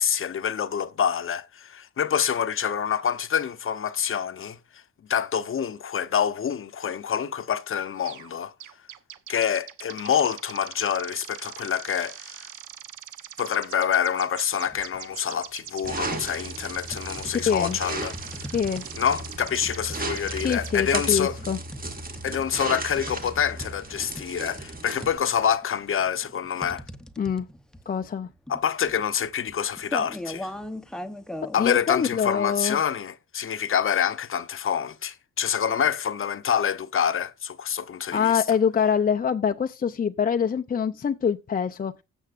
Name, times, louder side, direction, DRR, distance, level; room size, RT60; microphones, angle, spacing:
voice 1, 0.0-4.6 5.1-8.5 9.3-12.5 13.4-18.1 18.9-21.4 22.2-26.8 28.5-30.5 31.5-38.6, left 8 dB, 45° left, 0.9 m, -26 dB
sound 1, 8.1-8.3 8.6-21.0, right 10 dB, 75° right, 1.0 m, -42 dB
sound 2, 14.6-15.0 15.4-16.3 16.9-31.6, left 1 dB, ahead, 0.9 m, -40 dB
sound 3, 15.8-25.2, right 2 dB, 30° right, 1.9 m, -35 dB
voice 2, 17.3-17.8 18.5-18.8 20.4-21.6 27.2-27.5 27.9-28.3 31.6-32.8 38.1-42.0, left 7 dB, 30° left, 0.6 m, -24 dB
16.0 x 7.2 x 2.5 m
cardioid pair, 90°, 30 cm